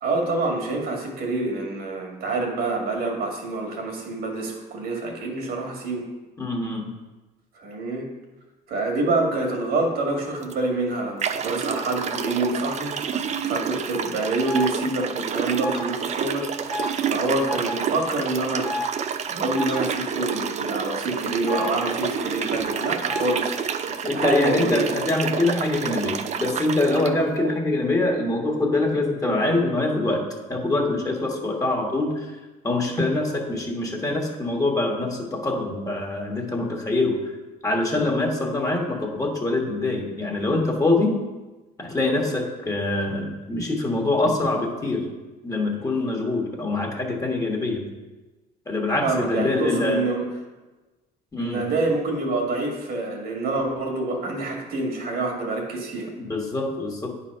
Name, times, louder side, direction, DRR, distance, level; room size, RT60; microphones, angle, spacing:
voice 1, 0.0-6.1 7.6-8.1 8.7-18.7 19.3-23.6 24.1-24.9 49.0-50.2 51.4-56.1, right 2 dB, 70° right, 1 dB, 2.1 m, -27 dB
voice 2, 6.4-6.9 24.0-32.3 32.6-37.3 37.6-41.2 41.8-45.1 45.4-47.9 48.6-50.0 51.3-51.7 56.2-57.2, left 2 dB, 20° left, 0 dB, 1.5 m, -24 dB
sound 1, 10.4-10.5 11.2-27.1, right 7 dB, 40° right, 0.5 m, -29 dB
sound 2, 14.5-14.7 15.6-15.8 16.7-16.9 17.5-17.7 18.6-18.9 19.6-19.8 21.5-21.7 23.1-23.3, left 2 dB, ahead, 1.1 m, -30 dB
9.2 x 4.1 x 5.5 m, 1.1 s
cardioid pair, 110°, 17 cm